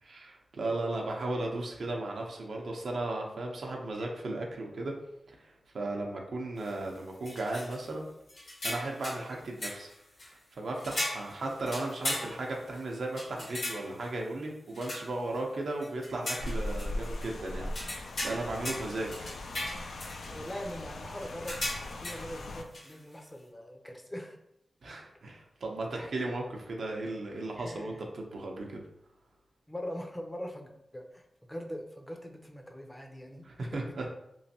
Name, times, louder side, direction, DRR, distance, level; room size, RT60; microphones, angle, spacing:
voice 1, 0.0-4.9 5.3-8.0 8.6-9.9 10.5-19.3 24.8-28.8 33.4-34.1, right 2 dB, 75° right, 0 dB, 0.6 m, -36 dB
sound 1, 6.6-6.7 7.2-7.9 8.3-9.3 9.6-10.3 10.8-12.8 13.2-14.1 14.7-15.4 15.8-17.3 17.7-20.5 21.2-22.4 22.7-22.9, left 1 dB, 70° left, 1.0 m, -38 dB
Rain, 16.4-22.6, left 1 dB, 85° left, 0.3 m, -39 dB
voice 2, 20.3-24.4 27.6-28.0 29.7-34.0, equal, 15° left, 3 dB, 0.5 m, -42 dB
3.0 x 2.5 x 2.7 m, 0.82 s
wide cardioid pair, 75°, 0 cm